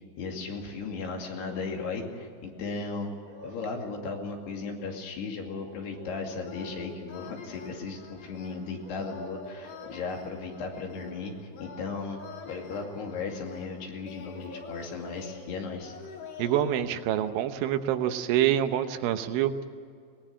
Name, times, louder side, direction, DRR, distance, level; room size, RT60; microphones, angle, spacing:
voice 1, 0.2-3.2 3.4-11.3 11.6-12.2 12.5-15.9, left 4 dB, 65° left, 1 dB, 4.4 m, -36 dB
sound 1, 1.0-1.7 3.0-4.1 5.4-6.8 8.8-10.0 11.8-13.0 14.0-15.2 16.5-16.6, left 1 dB, 55° right, 7.7 m, -47 dB
sound 2, 6.4-16.6, left 6 dB, 90° left, 5.1 m, -47 dB
voice 2, 16.4-19.7, right 11 dB, 85° right, 8 dB, 3.4 m, -26 dB
22.5 x 20.5 x 7.6 m, 2.2 s
omnidirectional pair, 5.4 m